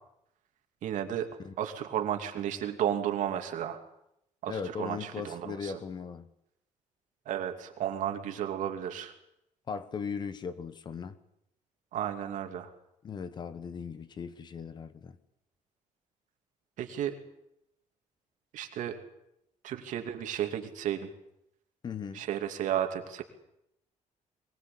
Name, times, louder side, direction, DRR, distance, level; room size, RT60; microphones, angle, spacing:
voice 1, 0.8-1.3 1.6-3.8 4.4-5.7 7.3-9.1 11.9-12.7 16.8-17.2 18.5-19.0 19.6-21.1 22.1-23.2, right 10 dB, 80° right, 2.7 m, -33 dB
voice 2, 4.5-6.3 9.7-11.2 13.0-15.2 21.8-22.2, left 6 dB, 35° left, 1.1 m, -38 dB
22.0 x 20.5 x 8.6 m
cardioid pair, 175°, 13 cm